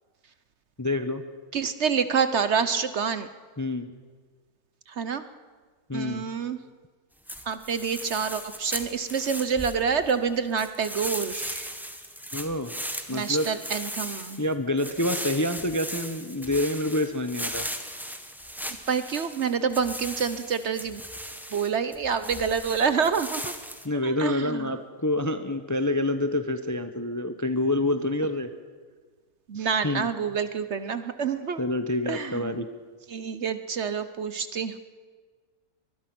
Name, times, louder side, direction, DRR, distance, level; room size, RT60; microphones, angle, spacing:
voice 1, 0.8-1.2 3.6-3.9 5.9-6.2 12.3-12.7 13.1-13.5 14.4-17.7 23.8-28.5 29.5-30.1 31.6-32.7, left 1 dB, 15° left, 9 dB, 0.7 m, -27 dB
voice 2, 1.5-3.3 4.9-5.2 5.9-6.6 7.5-11.7 13.1-14.4 18.9-21.0 21.5-23.5 24.0-24.7 29.5-31.7 32.1-32.6 33.1-34.8, right 6 dB, 55° right, 12 dB, 1.0 m, -27 dB
sound 1, 7.3-10.2 10.6-23.9, equal, ahead, 1.2 m, -37 dB
24.5 x 20.0 x 6.1 m, 1.5 s
omnidirectional pair, 1.6 m